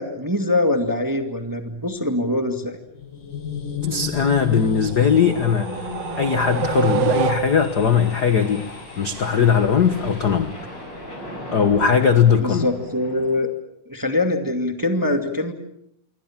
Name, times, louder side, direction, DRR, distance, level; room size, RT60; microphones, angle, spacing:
voice 1, 0.0-2.8 12.4-13.5 13.9-15.5, left 2 dB, 10° right, 6 dB, 1.5 m, -23 dB
sound 1, 2.0-2.1 2.5-2.8 4.1-13.4, equal, 35° left, 7.5 m, -39 dB
sound 2, 2.8-9.8, left 7 dB, 80° left, 4.6 m, -32 dB
voice 2, 3.8-5.8 6.2-8.7 9.0-10.5 11.5-12.7, left 7 dB, 55° left, 9 dB, 1.1 m, -19 dB
sound 3, 4.6-7.9, right 10 dB, 55° right, 2.2 m, -27 dB
27.5 x 24.0 x 7.3 m, 0.75 s
omnidirectional pair, 3.7 m